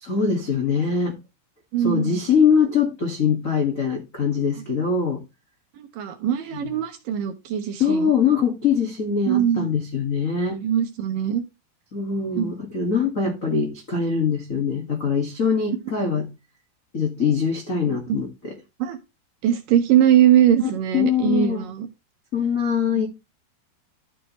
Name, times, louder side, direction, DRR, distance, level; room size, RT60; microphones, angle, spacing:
voice 1, 0.0-1.2 1.8-5.2 6.5-6.7 7.8-10.6 11.9-16.3 16.9-18.5 20.9-21.6 22.3-23.1, left 6 dB, 65° left, 0.8 m, -23 dB
voice 2, 1.7-2.2 5.8-8.1 9.3-9.7 10.6-11.4 12.3-12.5 17.8-18.2 18.8-19.0 19.4-21.9 22.9-23.0, right 10 dB, 70° right, 2.3 m, -21 dB
12.5 x 6.4 x 3.0 m
omnidirectional pair, 4.8 m